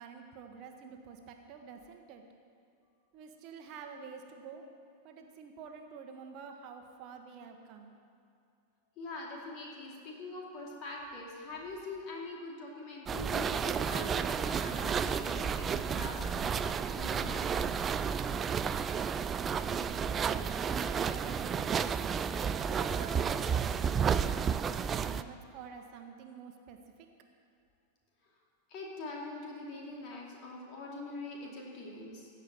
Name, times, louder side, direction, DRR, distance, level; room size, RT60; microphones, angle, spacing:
voice 1, 0.0-2.2 3.1-4.6 5.0-7.9 19.7-20.6 21.0-21.8 22.5-23.7 24.3-26.8, right 6 dB, 40° right, 4 dB, 1.1 m, -48 dB
voice 2, 9.0-17.6 20.3-20.5 28.7-32.3, left 2 dB, 40° left, -1 dB, 2.6 m, -44 dB
sound 1, 13.1-25.2, right 7 dB, 20° right, 0.4 m, -32 dB
16.0 x 5.4 x 8.5 m, 2.4 s
figure-of-eight pair, 90°, 0 cm